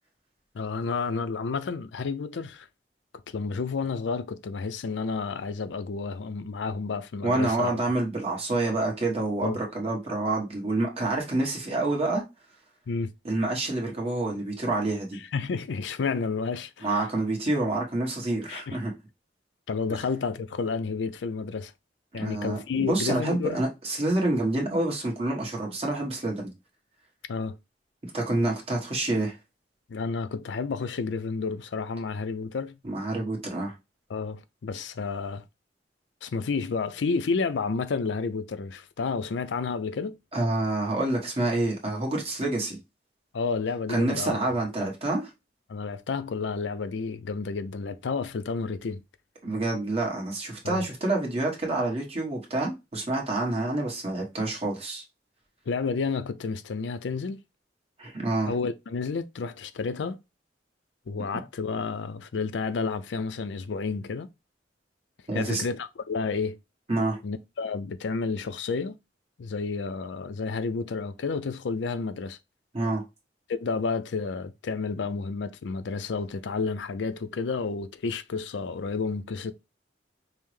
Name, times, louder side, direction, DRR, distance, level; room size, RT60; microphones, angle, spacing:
voice 1, 0.5-2.7 3.3-7.7 9.4-9.6 12.9-13.1 15.3-17.0 18.5-18.8 19.7-21.7 22.1-23.6 27.3-27.6 29.9-32.8 34.1-35.4 36.2-40.2 43.3-44.4 45.7-49.0 50.6-50.9 55.7-57.4 58.5-60.2 61.1-64.3 65.3-66.6 67.2-68.9 69.4-72.4 73.5-79.5, left 4 dB, 90° left, 0.4 m, -30 dB
voice 2, 7.2-12.2 13.2-15.2 16.8-18.9 22.1-26.5 28.0-29.3 32.8-33.7 40.3-42.8 43.9-45.3 49.4-55.0 58.0-58.5 65.3-65.6 66.9-67.2 72.7-73.0, right 2 dB, 35° right, 1.2 m, -27 dB
5.4 x 2.0 x 3.1 m
head